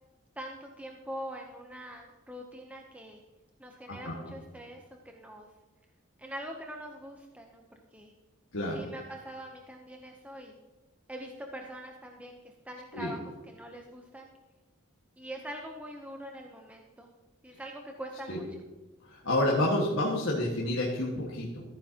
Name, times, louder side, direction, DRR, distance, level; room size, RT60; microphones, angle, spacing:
voice 1, 0.4-3.2 3.6-5.5 6.2-8.1 8.7-10.6 11.1-14.3 15.2-17.1 17.4-18.4, equal, 5° right, 2 dB, 0.7 m, -43 dB
voice 2, 3.9-4.3 8.5-8.9 12.9-13.1 18.3-18.4 19.0-21.6, left 1 dB, 75° left, -4 dB, 1.7 m, -29 dB
14.5 x 9.1 x 2.8 m, 1.3 s
head